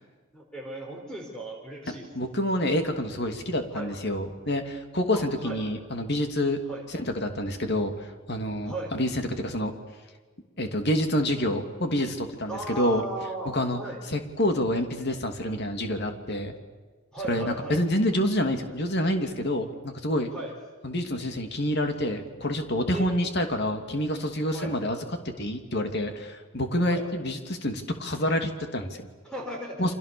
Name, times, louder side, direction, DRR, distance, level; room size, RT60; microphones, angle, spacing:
voice 1, 0.3-2.1 3.7-3.9 5.1-5.6 6.7-6.8 8.6-8.9 12.5-14.0 17.1-17.8 20.3-20.6 22.9-23.1 24.5-24.7 26.9-27.1 29.2-29.9, right 1 dB, 5° left, 0 dB, 4.7 m, -36 dB
voice 2, 1.9-6.6 6.9-7.9 8.3-9.7 10.6-13.0 13.5-13.8 14.1-16.5 17.3-20.3 20.8-25.0 25.2-29.1 29.8-29.9, left 1 dB, 50° left, 6 dB, 2.9 m, -27 dB
29.5 x 26.0 x 7.1 m, 1.4 s
head